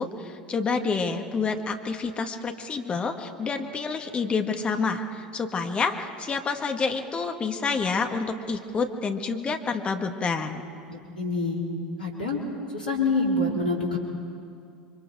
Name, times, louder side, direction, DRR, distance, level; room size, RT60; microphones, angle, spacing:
voice 1, 0.0-10.6, left 4 dB, 25° left, 5 dB, 1.8 m, -28 dB
voice 2, 10.9-11.6 12.0-12.4 12.7-14.0, left 2 dB, 75° left, -2 dB, 4.3 m, -26 dB
28.0 x 24.0 x 4.6 m, 2.3 s
figure-of-eight pair, 80°, 5 cm